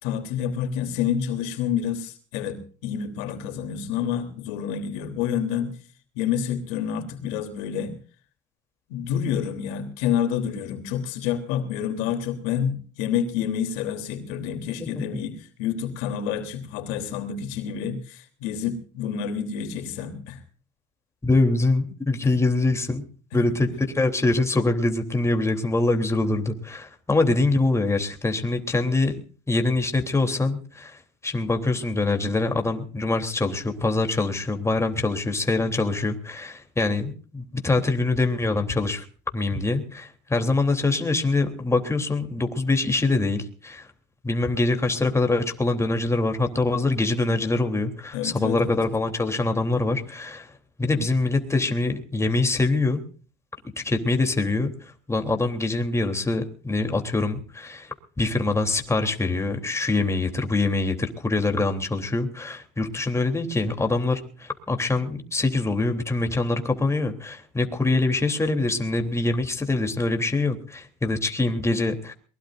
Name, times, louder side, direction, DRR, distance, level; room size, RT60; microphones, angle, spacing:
voice 1, 0.0-5.8 6.1-7.9 8.9-20.4 22.2-22.3 23.3-23.5 48.1-48.7, left 8 dB, 75° left, 7 dB, 3.4 m, -28 dB
voice 2, 21.2-23.0 23.3-23.7 23.9-29.1 29.5-39.0 39.3-43.9 44.2-50.5 50.8-53.0 53.8-72.1, left 2 dB, 15° left, 5 dB, 3.3 m, -24 dB
22.5 x 21.5 x 2.6 m, 0.41 s
supercardioid pair, 95°, 21 cm